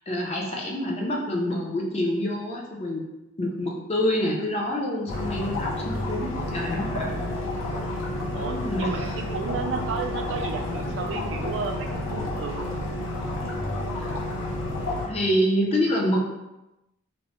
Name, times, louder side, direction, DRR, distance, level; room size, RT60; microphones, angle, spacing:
voice 1, 0.1-3.0 3.4-7.4 8.3-9.2 14.0-14.1 15.1-16.2, equal, 30° left, -2 dB, 0.5 m, -27 dB
sound 1, 5.1-15.1, left 1 dB, 75° left, 0.6 m, -30 dB
voice 2, 8.3-12.7, right 5 dB, 60° right, 5 dB, 0.3 m, -33 dB
2.9 x 2.0 x 2.9 m, 0.96 s
head